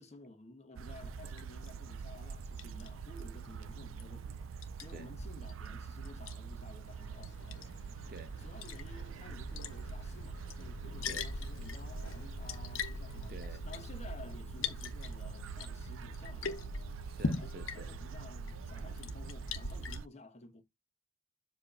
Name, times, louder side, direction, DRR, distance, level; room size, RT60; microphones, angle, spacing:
voice 1, 0.0-7.7 8.4-16.7 17.4-20.6, left 2 dB, 35° left, 1.1 m, -53 dB
sound 1, 0.8-20.1, right 7 dB, 85° right, 0.4 m, -45 dB
Liquid, 1.0-20.0, left 4 dB, 90° left, 1.0 m, -43 dB
sound 2, 6.8-13.3, left 1 dB, 65° left, 1.3 m, -58 dB
voice 2, 13.3-13.7 17.1-17.9, right 2 dB, 50° right, 0.9 m, -50 dB
7.6 x 2.9 x 4.9 m
head